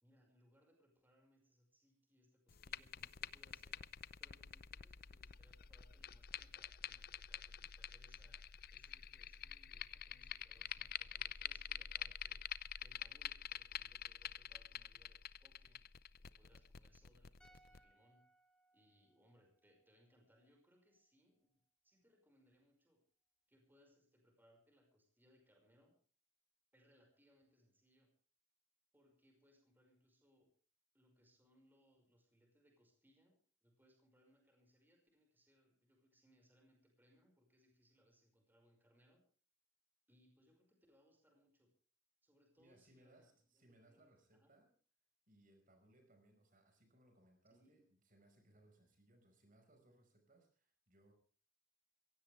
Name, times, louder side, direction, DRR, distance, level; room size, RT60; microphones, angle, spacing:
voice 1, 0.0-3.8 4.2-12.5 12.8-15.8 16.2-18.2 18.7-23.0 23.5-26.0 26.7-28.1 28.9-30.5 30.9-39.3 40.1-41.7 42.2-44.5 47.5-47.9, equal, 10° right, 2 dB, 5.5 m, -73 dB
sound 1, 2.5-17.8, left 10 dB, 55° left, 0.7 m, -48 dB
sound 2, 17.4-20.6 20.9-21.0, right 2 dB, 5° left, 2.6 m, -72 dB
voice 2, 42.6-44.7 45.3-51.1, right 1 dB, 45° right, 5 dB, 5.4 m, -69 dB
22.5 x 17.0 x 3.5 m, 0.41 s
head